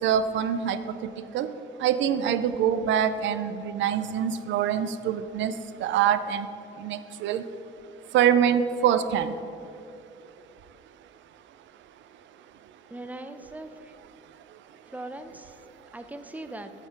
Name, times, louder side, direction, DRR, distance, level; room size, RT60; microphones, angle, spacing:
voice 1, 0.0-1.5 1.8-5.6 5.8-6.5 6.8-7.4 8.1-9.4, right 9 dB, 70° right, 12 dB, 0.4 m, -25 dB
voice 2, 12.9-13.9 14.9-15.6 15.9-16.7, right 2 dB, 10° right, 9 dB, 0.5 m, -40 dB
8.8 x 4.3 x 4.6 m, 2.6 s
cardioid pair, 90°, 20 cm